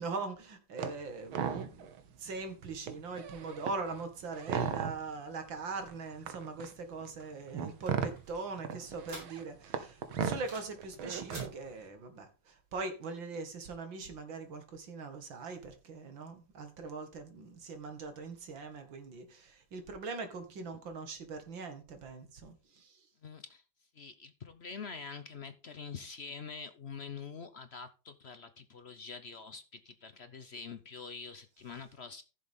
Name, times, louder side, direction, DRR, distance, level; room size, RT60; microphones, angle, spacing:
voice 1, 0.0-1.9 2.2-23.0, right 4 dB, 70° right, 2.6 m, -41 dB
sound 1, 0.8-1.0 1.3-2.0 2.4-2.5 2.8-5.2 5.9-11.7, right 7 dB, 90° right, 1.9 m, -37 dB
sound 2, 7.2-9.7 10.0-10.8 11.1-11.5, right 1 dB, 45° right, 6.5 m, -50 dB
voice 2, 23.2-23.6 23.9-32.2, left 5 dB, 55° left, 0.7 m, -45 dB
15.0 x 7.1 x 3.6 m
omnidirectional pair, 2.2 m